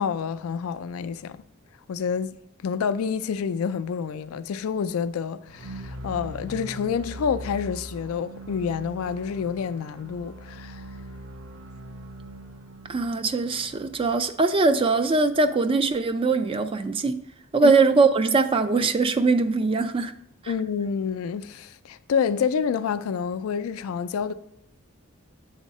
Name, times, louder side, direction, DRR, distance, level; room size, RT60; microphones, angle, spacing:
voice 1, 0.0-1.4 1.9-2.4 2.6-10.8 17.6-17.7 20.5-24.3, left 6 dB, 85° left, 0.4 m, -28 dB
sound 1, 5.4-15.5, right 1 dB, 80° right, 0.7 m, -41 dB
voice 2, 12.9-17.2 17.5-20.1 20.4-20.5, right 3 dB, 25° right, 0.3 m, -21 dB
7.2 x 3.6 x 4.1 m
head